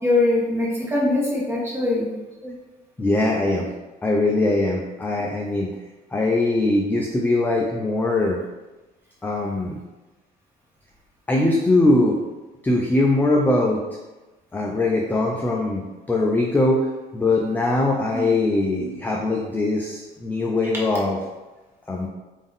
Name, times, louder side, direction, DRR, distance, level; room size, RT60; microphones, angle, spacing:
voice 1, 0.0-2.1 18.1-18.3, left 2 dB, 15° right, -5 dB, 1.3 m, -22 dB
voice 2, 3.0-3.7 4.0-5.7 6.1-8.4 9.2-9.8 11.3-12.2 12.6-13.8 14.5-21.2 21.9-22.1, left 2 dB, 10° left, -1 dB, 0.4 m, -21 dB
3.6 x 2.6 x 3.5 m, 1.1 s
cardioid pair, 110°, 17 cm